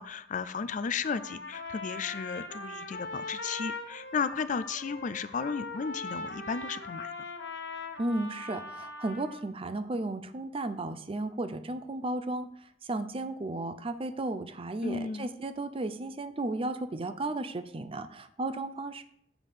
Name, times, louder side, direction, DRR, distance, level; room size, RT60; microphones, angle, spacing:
voice 1, 0.0-7.1 14.8-15.3, left 5 dB, 45° left, 15 dB, 0.4 m, -34 dB
Trumpet, 1.0-9.4, left 2 dB, 70° left, 1.1 m, -40 dB
voice 2, 8.0-19.0, right 2 dB, 30° right, 11 dB, 0.6 m, -34 dB
7.2 x 5.1 x 5.8 m, 0.66 s
head